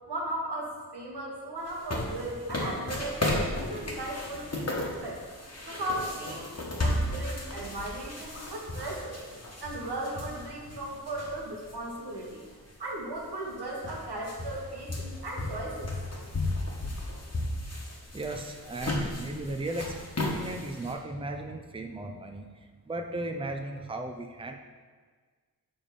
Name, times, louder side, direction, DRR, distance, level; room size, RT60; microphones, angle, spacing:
voice 1, 0.1-5.2 5.7-9.2 9.6-12.4 12.8-15.9, right 1 dB, 90° right, -3 dB, 1.4 m, -37 dB
sound 1, 1.7-11.7 12.2-12.3 13.2-13.3 13.5-20.9, left 1 dB, 40° left, 1.3 m, -34 dB
voice 2, 18.1-22.5 22.9-24.6, right 2 dB, 15° right, 4 dB, 0.6 m, -36 dB
7.0 x 3.5 x 5.4 m, 1.5 s
wide cardioid pair, 45°, 38 cm